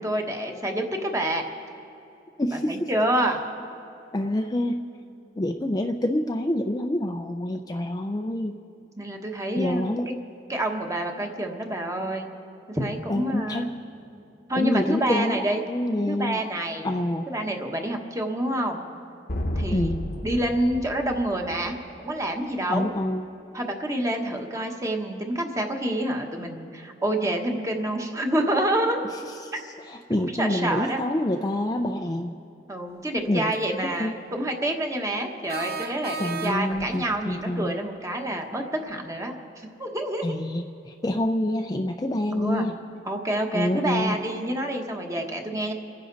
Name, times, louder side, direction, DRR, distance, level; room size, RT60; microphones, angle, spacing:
voice 1, 0.0-1.4 2.5-3.4 9.0-9.9 10.5-12.3 12.7-13.7 14.5-15.6 16.1-16.9 17.3-18.8 19.5-19.9 20.2-22.9 23.5-29.0 29.5-29.6 30.2-31.0 32.7-39.3 39.8-40.4 42.3-42.7 43.0-45.7, right 1 dB, 15° right, 3 dB, 1.3 m, -27 dB
voice 2, 2.4-2.9 4.1-4.8 5.4-8.6 9.6-10.1 13.1-13.7 14.6-15.4 15.7-16.4 16.8-17.3 19.7-20.0 22.7-23.2 29.4-29.5 29.9-32.3 33.3-33.5 33.8-34.1 36.2-37.7 40.2-42.7 43.5-44.2, left 1 dB, 20° left, 4 dB, 0.5 m, -27 dB
sound 1, 19.3-22.0, left 1 dB, 50° left, 1.0 m, -32 dB
sound 2, 33.2-33.3 35.5-36.9, right 4 dB, 55° right, 1.1 m, -34 dB
29.5 x 10.0 x 4.0 m, 2.7 s
head